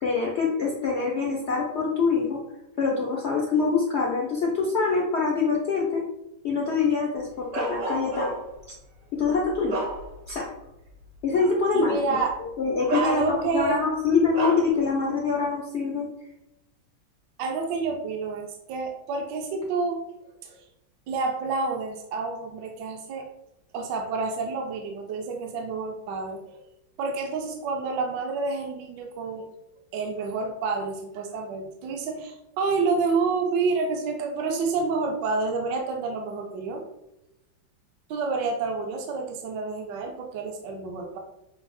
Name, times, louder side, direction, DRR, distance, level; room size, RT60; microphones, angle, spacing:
voice 1, 0.0-2.4 2.8-6.0 6.4-8.4 9.1-9.9 10.3-10.5 11.2-16.1, left 4 dB, 80° left, -2 dB, 0.6 m, -25 dB
Bark, 7.5-8.6 9.2-10.4 10.9-11.0 12.2-12.3 12.9-13.7 14.3-14.8, right 3 dB, 55° right, 0.9 m, -31 dB
voice 2, 11.7-12.3 13.0-13.8 17.4-20.0 20.4-20.6 21.1-23.3 23.7-26.6 27.0-29.5 29.9-36.8 38.1-41.2, right 4 dB, 75° right, 2 dB, 1.2 m, -29 dB
5.7 x 2.0 x 4.1 m, 0.91 s
omnidirectional pair, 2.1 m